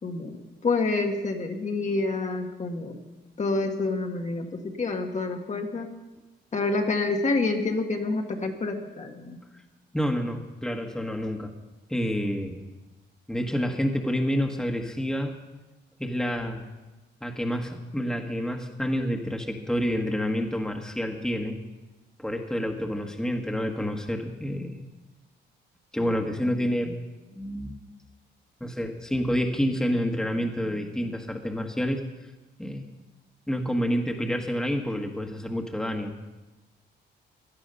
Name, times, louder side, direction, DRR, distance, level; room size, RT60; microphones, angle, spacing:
voice 1, 0.0-0.4 0.6-3.0 3.4-5.9 6.5-9.4, left 3 dB, 35° left, 3 dB, 1.8 m, -28 dB
voice 2, 9.9-11.5 11.9-12.6 13.3-15.3 16.0-16.6 17.2-21.6 22.2-24.8 25.9-27.0 27.3-27.8 28.6-32.0 32.6-32.8 33.5-36.1, equal, 5° left, 2 dB, 1.6 m, -28 dB
17.0 x 11.5 x 5.5 m, 1.1 s
cardioid pair, 90°, 20 cm